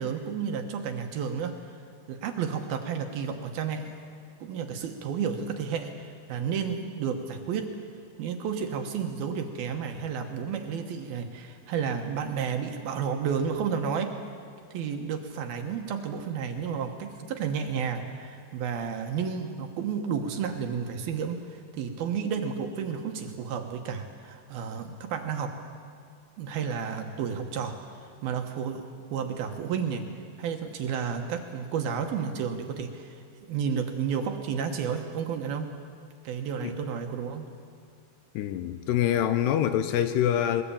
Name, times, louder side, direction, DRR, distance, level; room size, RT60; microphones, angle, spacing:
voice 1, 0.0-1.6 2.1-4.1 4.4-7.7 8.2-14.2 14.7-25.6 26.4-27.8 28.2-30.1 30.4-33.2 33.5-35.7 36.2-37.5, right 6 dB, 70° right, 5 dB, 2.8 m, -31 dB
voice 2, 38.3-40.6, left 10 dB, 80° left, 10 dB, 2.9 m, -25 dB
21.5 x 21.0 x 8.7 m, 2.3 s
omnidirectional pair, 5.1 m